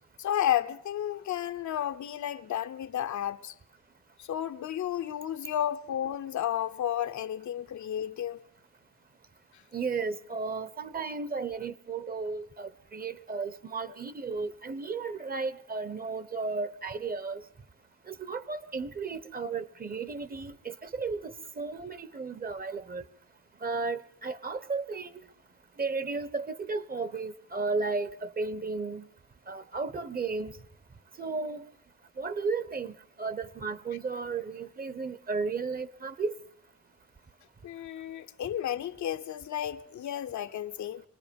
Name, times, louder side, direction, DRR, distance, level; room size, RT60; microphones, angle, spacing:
voice 1, 0.2-3.5 4.2-8.4 37.6-41.0, left 11 dB, 75° left, 0.9 m, -32 dB
voice 2, 9.7-17.4 18.1-23.0 23.6-25.1 25.8-29.1 29.5-30.6 31.2-31.6 32.2-36.3, right 4 dB, 30° right, 0.9 m, -34 dB
26.0 x 19.0 x 5.3 m
wide cardioid pair, 135°, 29 cm